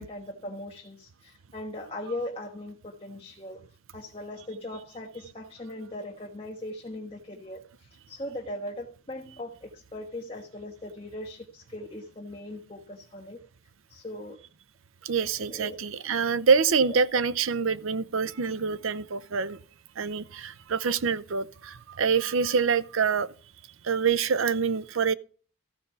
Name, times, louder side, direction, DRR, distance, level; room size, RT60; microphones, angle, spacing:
voice 1, 0.0-3.6 3.9-13.4 13.9-14.4 15.4-15.8 16.8-17.0, left 1 dB, 25° left, 1.3 m, -39 dB
voice 2, 15.0-19.6 20.0-23.3 23.8-25.1, right 5 dB, 75° right, 0.6 m, -26 dB
14.5 x 5.3 x 6.8 m
head